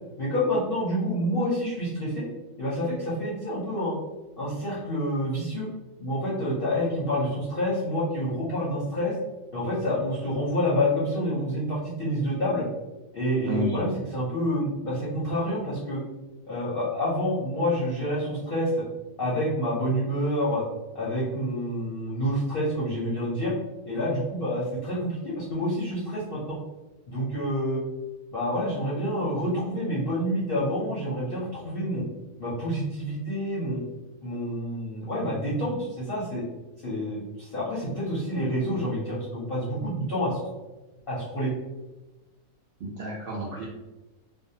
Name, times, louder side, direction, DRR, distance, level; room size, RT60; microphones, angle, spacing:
voice 1, 0.2-2.2 2.6-3.9 4.4-5.7 6.0-9.1 9.5-12.6 13.1-16.0 16.5-18.7 19.2-20.6 20.9-23.5 23.8-26.6 27.1-27.8 28.3-32.0 32.4-33.8 34.2-36.4 36.8-40.5 41.1-41.5, equal, 55° left, -7 dB, 0.6 m, -28 dB
voice 2, 13.4-13.9 42.8-43.6, equal, 75° right, -6 dB, 0.5 m, -31 dB
2.5 x 2.0 x 2.7 m, 1.1 s
omnidirectional pair, 1.6 m